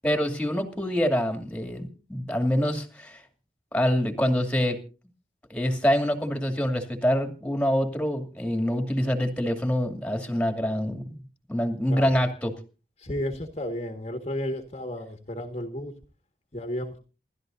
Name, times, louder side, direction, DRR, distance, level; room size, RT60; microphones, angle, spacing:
voice 1, 0.0-3.2 3.7-4.8 5.5-11.2 11.5-12.5, equal, 5° left, 2.5 m, -25 dB
voice 2, 13.0-15.9 16.5-17.0, left 1 dB, 35° left, 1.7 m, -33 dB
28.0 x 13.0 x 2.7 m
head